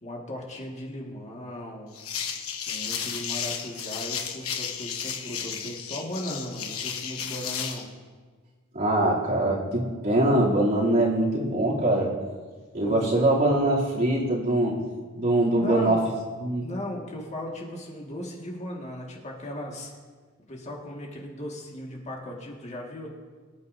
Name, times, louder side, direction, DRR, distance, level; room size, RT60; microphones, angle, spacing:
voice 1, 0.0-1.9 2.7-7.9 12.8-13.2 15.6-16.0 16.6-19.9 20.5-23.1, left 1 dB, 35° left, -1 dB, 1.9 m, -37 dB
sound 1, 1.9-7.8, left 7 dB, 80° left, 1.2 m, -33 dB
voice 2, 8.7-12.1 12.7-14.8 15.1-16.0 16.4-16.7, right 1 dB, 45° right, -6 dB, 3.0 m, -23 dB
23.5 x 9.6 x 2.7 m, 1.5 s
head